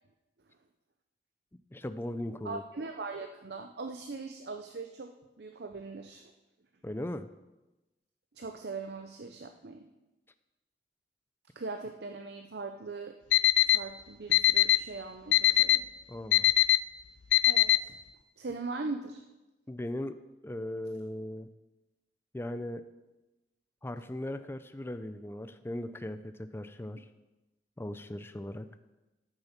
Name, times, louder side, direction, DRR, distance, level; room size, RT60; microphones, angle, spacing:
voice 1, 1.7-2.6 6.8-7.3 16.1-16.4 19.7-20.2 20.4-21.5 22.3-22.8 23.8-27.1 27.8-28.7, left 1 dB, 15° left, 10 dB, 0.5 m, -38 dB
voice 2, 2.4-6.2 8.4-9.9 11.6-13.2 13.6-15.9 17.4-18.0 18.4-19.2, right 3 dB, 65° right, 5 dB, 0.7 m, -40 dB
Alarm, 13.3-13.8 14.3-14.8 15.3-15.8 16.3-16.8 17.3-17.8, left 14 dB, 85° left, 0.4 m, -20 dB
13.0 x 6.8 x 5.9 m, 1.0 s
head